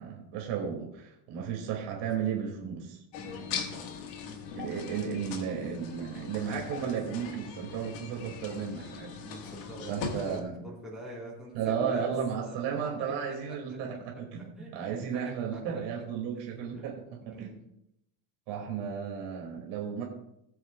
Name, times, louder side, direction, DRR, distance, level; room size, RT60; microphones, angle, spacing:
voice 1, 0.0-3.0 4.5-9.1 9.9-10.6 11.5-17.5 18.5-20.0, right 7 dB, 65° right, -1 dB, 2.4 m, -34 dB
sound 1, 3.1-10.4, left 5 dB, 70° left, 1.7 m, -40 dB
voice 2, 3.2-3.8 4.2-4.5 9.2-12.1 12.4-13.8 14.6-15.8 16.7-16.8 17.2-17.6, right 1 dB, ahead, -8 dB, 4.3 m, -46 dB
19.5 x 7.9 x 2.3 m, 0.81 s
cardioid pair, 175°, 44 cm